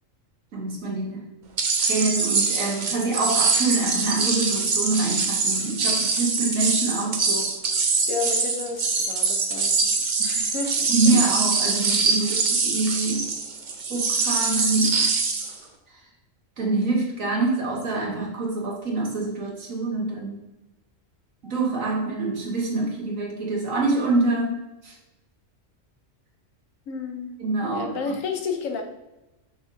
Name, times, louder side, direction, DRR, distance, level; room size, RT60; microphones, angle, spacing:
voice 1, 0.5-1.3 1.8-7.5 10.9-13.3 13.9-15.1 16.6-20.4 21.4-24.6 24.8-25.0 27.4-27.9, right 3 dB, 80° right, -3 dB, 1.9 m, -25 dB
sound 1, 1.6-15.6, right 4 dB, 45° right, 0.7 m, -24 dB
voice 2, 8.1-10.9 26.9-27.4 27.6-28.8, left 5 dB, 85° left, 4 dB, 1.3 m, -31 dB
6.1 x 5.8 x 2.7 m, 1.0 s
omnidirectional pair, 1.4 m